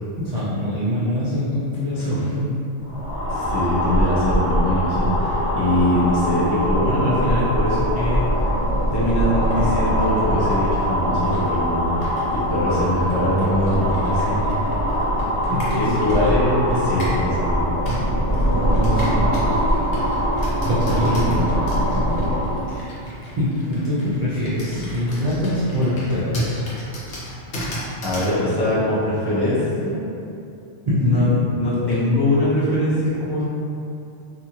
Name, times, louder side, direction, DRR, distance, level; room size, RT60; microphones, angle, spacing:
voice 1, 0.2-2.6 15.5-16.1 18.5-19.6 20.7-22.3 22.7-22.9 23.4-26.6 30.9-31.4, left 1 dB, 55° right, -11 dB, 0.4 m, -24 dB
sound 1, 2.8-22.7, equal, 50° left, 1.4 m, -22 dB
voice 2, 3.3-8.5 8.9-12.1 12.5-14.5 15.7-17.6 21.1-21.3 28.0-30.0 31.0-33.4, left 1 dB, 25° left, -9 dB, 0.6 m, -22 dB
Computer keyboard, 9.4-17.3 17.9-28.4, equal, 65° left, 1.0 m, -35 dB
2.6 x 2.5 x 2.9 m, 2.7 s
omnidirectional pair, 1.3 m